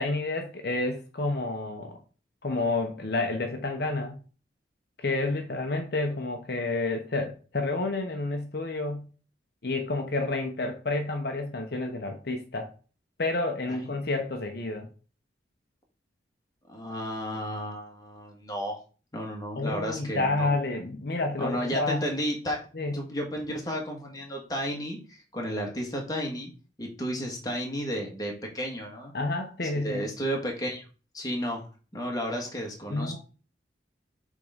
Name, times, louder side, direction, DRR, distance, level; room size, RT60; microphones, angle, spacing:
voice 1, 0.0-2.0 2.4-4.2 5.0-9.1 9.6-12.7 13.2-14.9 19.5-22.1 22.7-22.9 29.1-30.1 32.9-33.2, left 2 dB, 60° left, 4 dB, 1.0 m, -29 dB
voice 2, 16.7-18.8 19.1-20.5 21.4-22.6 22.9-26.5 26.8-29.1 29.7-30.8 31.1-31.6 31.9-33.2, equal, 20° left, 0 dB, 1.8 m, -33 dB
6.9 x 3.8 x 5.1 m, 0.37 s
head